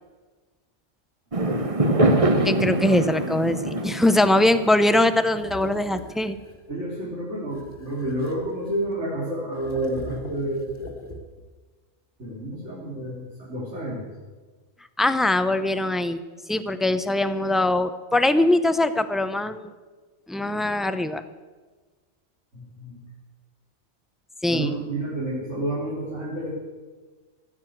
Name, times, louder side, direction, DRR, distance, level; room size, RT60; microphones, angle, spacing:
Fireworks, 1.3-5.8, right 1 dB, 30° right, 1.2 m, -24 dB
voice 1, 2.4-6.4 15.0-16.2 16.5-19.7 20.3-21.2 24.4-24.7, left 1 dB, ahead, 11 dB, 0.4 m, -22 dB
sound 1, 5.3-6.7 7.5-9.0 9.5-11.5, equal, 35° left, 1.8 m, -42 dB
voice 2, 6.7-11.1 12.2-14.0 22.5-23.0 24.5-26.5, right 1 dB, 75° right, -7 dB, 3.5 m, -30 dB
15.5 x 9.7 x 7.8 m, 1.3 s
omnidirectional pair, 1.2 m